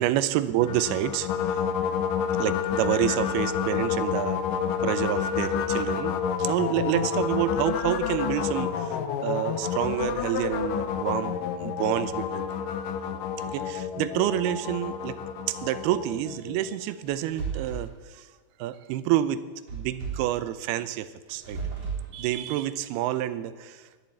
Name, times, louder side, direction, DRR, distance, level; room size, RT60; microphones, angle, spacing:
voice 1, 0.0-1.6 2.4-4.5 4.8-12.5 13.5-15.2 15.5-18.3 18.6-19.4 19.7-21.6 22.1-23.9, right 12 dB, 80° right, 14 dB, 2.6 m, -28 dB
sound 1, 0.6-16.8, left 7 dB, 70° left, 2.2 m, -29 dB
sound 2, 17.1-17.9 19.7-20.4 21.3-22.1, right 6 dB, 50° right, 5.1 m, -34 dB
21.5 x 7.4 x 8.6 m, 1.4 s
omnidirectional pair, 4.7 m